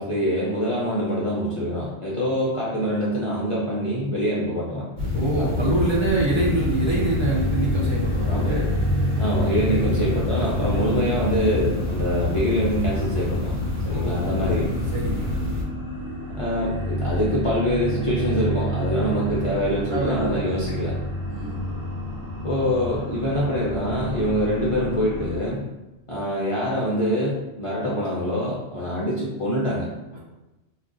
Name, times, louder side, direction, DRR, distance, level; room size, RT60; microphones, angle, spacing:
voice 1, 0.0-4.8 5.1-5.5 8.3-8.5 9.2-13.5 13.8-14.7 16.4-20.9 22.4-25.7 26.1-29.9, equal, 50° left, -7 dB, 0.4 m, -25 dB
sound 1, 5.0-15.6, left 2 dB, 65° right, 1.1 m, -27 dB
voice 2, 5.1-8.7 9.7-9.9 13.8-15.4 19.9-20.8 21.3-21.6 30.1-30.2, right 1 dB, 45° right, -5 dB, 0.3 m, -26 dB
sound 2, 6.1-25.3, right 1 dB, 20° right, 1.0 m, -30 dB
2.4 x 2.1 x 3.7 m, 1.0 s
omnidirectional pair, 1.1 m